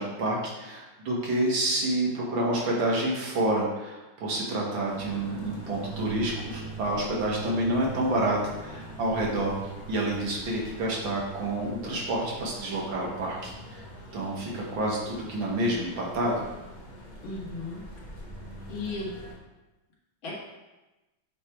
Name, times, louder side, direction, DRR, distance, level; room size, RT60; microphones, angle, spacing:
voice 1, 0.0-9.5 9.9-13.8 14.1-16.4, right 1 dB, 75° right, -3 dB, 2.2 m, -28 dB
sound 1, 4.8-19.4, right 2 dB, 35° left, 0.8 m, -42 dB
voice 2, 17.2-17.8 18.7-19.1 20.2-20.3, left 3 dB, 75° left, -5 dB, 2.5 m, -35 dB
8.2 x 3.4 x 4.4 m, 1.1 s
omnidirectional pair, 2.2 m